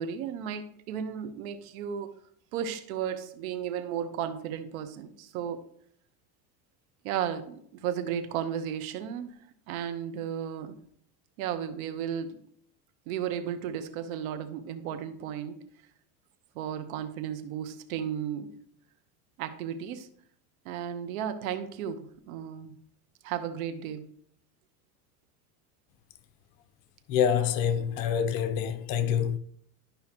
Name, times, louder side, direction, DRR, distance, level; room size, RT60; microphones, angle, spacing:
voice 1, 0.0-2.1 2.5-5.7 7.0-9.3 9.7-10.8 11.4-12.4 13.1-15.7 16.5-18.6 19.4-20.1 20.6-22.8 23.2-24.1, right 9 dB, 75° right, 1.1 m, -34 dB
voice 2, 27.1-29.4, left 8 dB, 55° left, 0.8 m, -26 dB
11.5 x 5.6 x 2.9 m
supercardioid pair, 130°, 43 cm